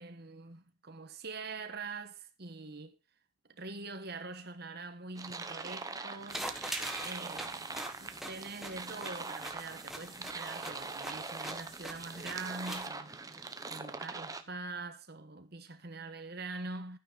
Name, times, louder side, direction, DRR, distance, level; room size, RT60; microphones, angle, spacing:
voice 1, 0.0-3.0 3.5-6.5 7.0-17.0, right 3 dB, 50° right, 1.4 m, -44 dB
sound 1, 5.2-14.4, right 3 dB, 15° right, 0.9 m, -42 dB
sound 2, 6.3-12.9, right 1 dB, ahead, 1.4 m, -43 dB
12.0 x 9.4 x 4.0 m
head